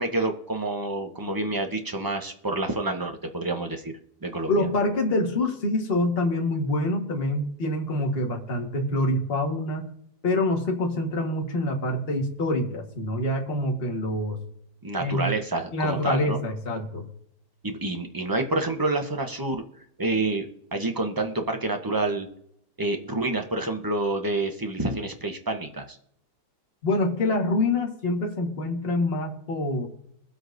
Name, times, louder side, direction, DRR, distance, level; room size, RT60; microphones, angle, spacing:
voice 1, 0.0-4.5 14.8-16.4 17.6-19.6 20.0-20.5 20.7-22.3 22.8-26.0, right 2 dB, 20° right, 5 dB, 0.5 m, -28 dB
voice 2, 4.5-9.9 10.2-14.4 15.0-15.3 15.7-17.1 26.8-29.9, left 1 dB, 35° left, 0 dB, 1.7 m, -26 dB
22.0 x 7.9 x 2.6 m, 0.73 s
omnidirectional pair, 1.8 m